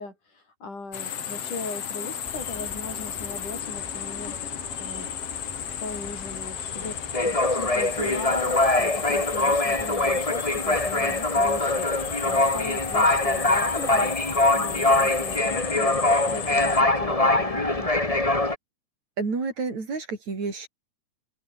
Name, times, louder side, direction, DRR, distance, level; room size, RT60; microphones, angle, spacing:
voice 1, 0.0-5.1 5.8-14.2 14.5-16.0 16.3-18.3, left 3 dB, 80° left, 9.7 m, -38 dB
sound 1, 0.9-16.8, left 8 dB, 55° left, 2.7 m, -34 dB
sound 2, 2.3-3.5 3.8-4.0 4.3-18.6, left 2 dB, 10° left, 2.1 m, -23 dB
voice 2, 19.2-20.7, right 4 dB, 65° right, 7.0 m, -29 dB
open air
omnidirectional pair, 3.5 m